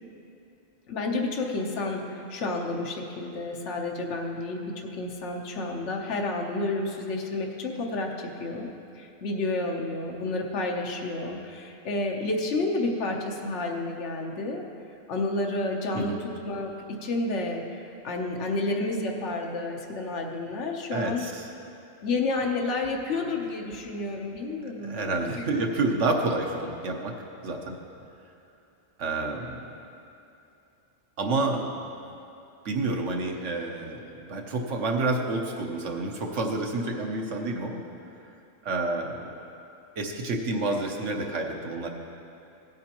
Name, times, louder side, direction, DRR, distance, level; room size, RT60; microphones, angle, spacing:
voice 1, 0.9-8.7 8.9-14.6 15.1-21.3 22.0-25.0 25.3-25.4, left 2 dB, 70° left, 0 dB, 1.2 m, -30 dB
voice 2, 20.9-21.5 24.8-27.2 27.4-27.8 29.0-29.7 31.2-32.2 32.6-37.8 38.6-39.3 40.0-41.9, right 2 dB, 75° right, 2 dB, 1.3 m, -29 dB
16.5 x 9.3 x 2.9 m, 2.7 s
omnidirectional pair, 1.3 m